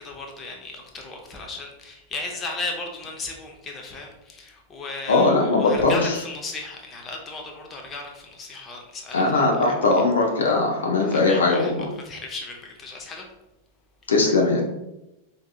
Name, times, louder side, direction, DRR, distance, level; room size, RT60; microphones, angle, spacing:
voice 1, 0.0-9.7 11.0-13.2, left 3 dB, 20° left, 1 dB, 0.7 m, -36 dB
voice 2, 5.1-6.2 9.1-11.9 14.1-14.6, left 3 dB, 65° left, 0 dB, 0.6 m, -20 dB
4.6 x 2.7 x 2.3 m, 0.93 s
figure-of-eight pair, 90°, 0 cm